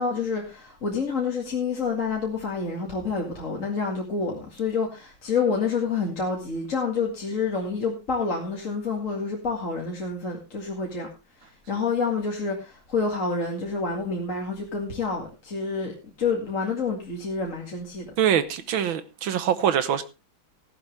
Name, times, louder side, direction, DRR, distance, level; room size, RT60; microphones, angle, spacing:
voice 1, 0.0-11.1 11.4-18.1, left 4 dB, 40° left, 2.5 m, -28 dB
voice 2, 18.2-20.0, right 9 dB, 85° right, 1.9 m, -24 dB
14.5 x 12.0 x 3.3 m
omnidirectional pair, 2.2 m